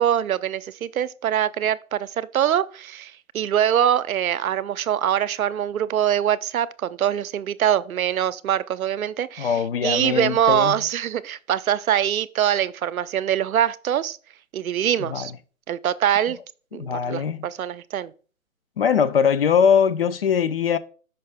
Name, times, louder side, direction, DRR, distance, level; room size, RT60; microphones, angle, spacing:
voice 1, 0.0-14.2 14.5-15.3 15.7-16.4 16.7-18.1, right 10 dB, 85° right, 0.6 m, -23 dB
voice 2, 9.4-10.8 15.1-15.3 16.7-17.5 18.8-20.8, left 7 dB, 45° left, 0.5 m, -21 dB
5.5 x 5.4 x 3.4 m
hypercardioid pair, 150°, 41 cm